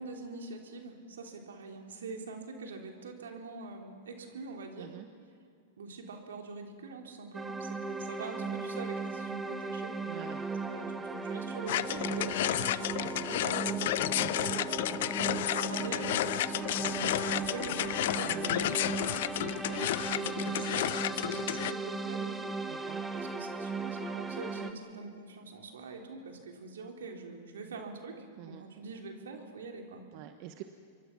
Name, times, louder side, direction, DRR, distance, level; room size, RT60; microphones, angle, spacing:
voice 1, 0.0-5.0 5.8-10.0 10.6-14.1 14.4-15.1 15.4-19.3 19.7-22.5 23.1-30.0, right 4 dB, 80° right, 3 dB, 3.4 m, -44 dB
sound 1, 7.3-24.7, right 4 dB, 15° right, 1.7 m, -37 dB
voice 2, 10.1-10.5 14.0-14.7 17.3-17.5 18.2-18.9 22.7-23.1 28.4-28.6 30.1-30.6, right 12 dB, 50° right, 7 dB, 1.2 m, -46 dB
sound 2, 11.7-21.7, left 14 dB, 65° left, 0.6 m, -32 dB
27.0 x 24.0 x 6.0 m, 2.3 s
hypercardioid pair, 105°, 0 cm